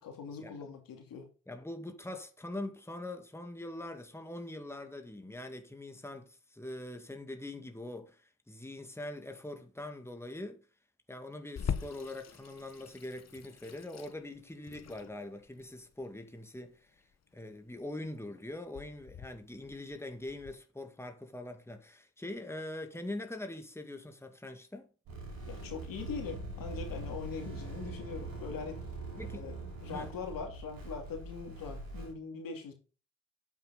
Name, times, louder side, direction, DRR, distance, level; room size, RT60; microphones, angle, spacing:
voice 1, 0.0-1.3 25.5-28.8 29.2-29.6 29.8-32.7, left 5 dB, 70° left, 2.7 m, -42 dB
voice 2, 1.5-10.6 11.1-17.0 17.3-24.9 29.2-29.4 29.9-30.1, left 1 dB, 5° left, 2.0 m, -43 dB
Water tap faucet / Sink (filling or washing), 11.6-20.5, left 7 dB, 50° left, 1.1 m, -43 dB
sound 1, 25.1-32.1, right 2 dB, 70° right, 5.9 m, -43 dB
9.1 x 8.0 x 4.1 m
hypercardioid pair, 45°, 35 cm